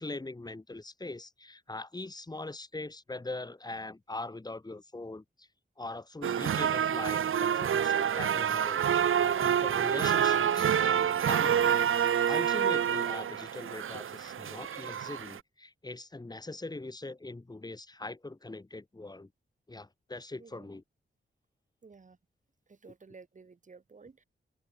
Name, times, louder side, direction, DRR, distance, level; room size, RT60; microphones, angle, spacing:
voice 1, 0.0-5.5 5.8-19.3 19.7-20.8, left 2 dB, 20° left, 4.7 m, -42 dB
sound 1, 6.2-15.4, right 8 dB, 90° right, 1.0 m, -27 dB
voice 2, 21.8-22.2 22.7-24.2, right 4 dB, 40° right, 3.1 m, -53 dB
open air
wide cardioid pair, 175°, 20 cm